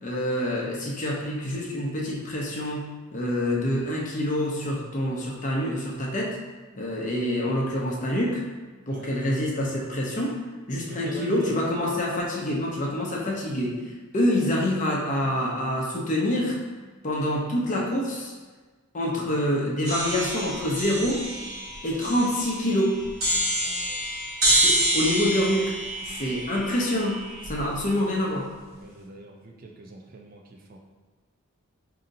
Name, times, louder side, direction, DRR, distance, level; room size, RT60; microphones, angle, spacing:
voice 1, 0.0-2.8 3.1-6.4 6.7-8.4 8.9-10.4 10.7-16.6 17.0-18.3 18.9-21.3 21.8-23.0 24.5-25.8 26.0-28.5, left 1 dB, 35° left, -3 dB, 0.6 m, -26 dB
voice 2, 10.9-11.6 13.3-13.4 23.6-24.0 27.5-27.6 28.8-30.8, right 2 dB, 40° right, 1 dB, 0.4 m, -44 dB
sound 1, 19.8-27.8, right 1 dB, 65° right, 1.2 m, -27 dB
5.1 x 2.8 x 2.6 m, 1.3 s
head